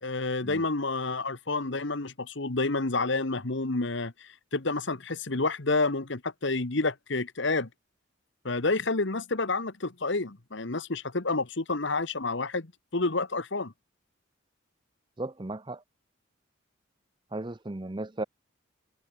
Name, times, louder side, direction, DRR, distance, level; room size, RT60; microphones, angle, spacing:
voice 1, 0.0-7.7 8.4-13.7, left 3 dB, 60° left, 1.3 m, -29 dB
voice 2, 15.2-15.8 17.3-18.2, right 2 dB, 25° right, 0.6 m, -35 dB
head